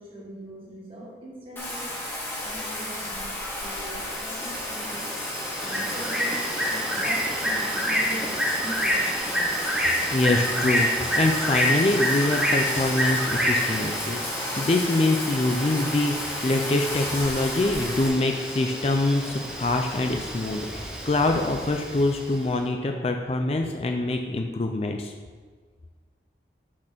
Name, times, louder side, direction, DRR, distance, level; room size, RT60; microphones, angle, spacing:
voice 1, 0.0-2.0 2.4-5.1 5.6-9.5, right 1 dB, 30° right, -5 dB, 1.8 m, -41 dB
Bathtub (filling or washing), 1.6-18.1, left 1 dB, 15° left, 1.3 m, -33 dB
Bird, 3.6-22.4, equal, 5° right, 0.8 m, -29 dB
voice 2, 10.1-10.9 11.1-20.7 21.1-25.1, left 2 dB, 35° left, 4 dB, 0.4 m, -24 dB
6.2 x 4.3 x 5.9 m, 1.5 s
head